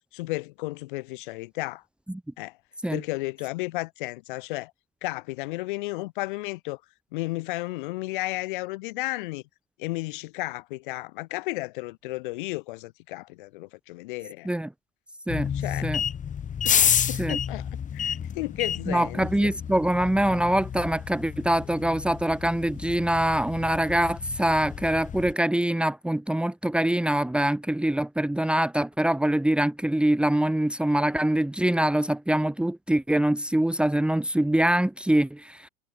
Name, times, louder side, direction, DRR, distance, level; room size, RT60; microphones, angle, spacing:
voice 1, 0.1-1.8 2.4-2.5 2.9-4.7 5.0-6.8 7.1-9.4 9.8-14.5 15.5-15.9 16.6-19.5, left 21 dB, 55° left, 2.6 m, -33 dB
sound 1, 15.3-25.3, left 8 dB, 25° left, 4.3 m, -30 dB
voice 2, 18.9-35.7, right 1 dB, 5° right, 2.5 m, -24 dB
figure-of-eight pair, 85°, 30 cm